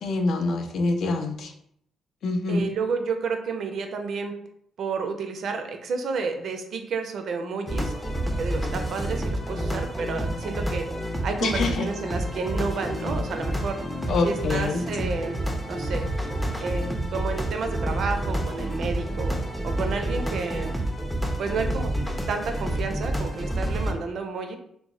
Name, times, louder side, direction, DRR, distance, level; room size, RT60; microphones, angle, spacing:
voice 1, 0.0-1.5 2.2-2.7 11.4-11.9 14.1-14.8, left 3 dB, 65° left, 5 dB, 0.4 m, -25 dB
voice 2, 2.5-4.3 4.8-7.9 8.4-10.9 11.2-13.8 14.2-15.4 15.7-16.1 16.6-16.8 17.1-19.4 19.6-20.7 21.4-21.9 22.3-24.6, right 4 dB, 65° right, 6 dB, 0.4 m, -30 dB
sound 1, 7.7-23.9, right 1 dB, 5° left, 0.4 m, -29 dB
2.0 x 2.0 x 3.6 m, 0.70 s
cardioid pair, 90°, 0 cm